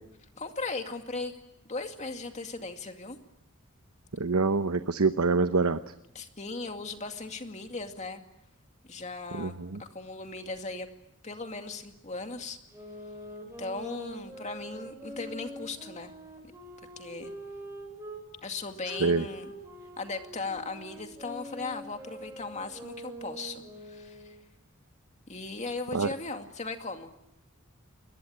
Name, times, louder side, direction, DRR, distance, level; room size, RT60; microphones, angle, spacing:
voice 1, 0.4-1.4 1.6-3.2 6.1-8.2 8.9-9.5 9.8-10.9 11.2-12.6 13.6-16.1 17.0-17.3 18.4-19.5 20.0-24.4 25.3-27.1, left 3 dB, 35° left, 5 dB, 2.3 m, -37 dB
voice 2, 4.2-5.9 9.3-9.8 19.0-19.3 25.9-26.1, right 4 dB, 85° right, 10 dB, 0.9 m, -26 dB
sound 1, 12.7-18.2 18.9-24.4, right 1 dB, 15° right, 7.4 m, -44 dB
28.0 x 22.0 x 8.7 m, 0.81 s
head